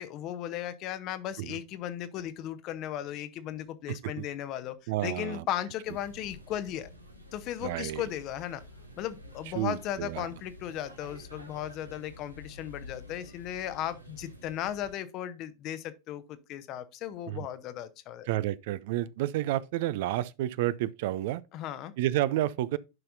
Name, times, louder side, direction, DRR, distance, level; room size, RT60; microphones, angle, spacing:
voice 1, 0.0-6.9 7.3-8.6 9.0-18.3 21.5-21.9, left 11 dB, 40° left, 0.8 m, -36 dB
voice 2, 3.9-4.3 4.9-5.5 7.6-8.1 9.5-10.3 17.3-17.5 18.3-21.4 22.0-22.8, right 14 dB, 50° right, 0.4 m, -30 dB
sound 1, 5.8-14.9, left 1 dB, 85° right, 1.3 m, -50 dB
10.5 x 5.7 x 2.6 m
figure-of-eight pair, 90°, 0 cm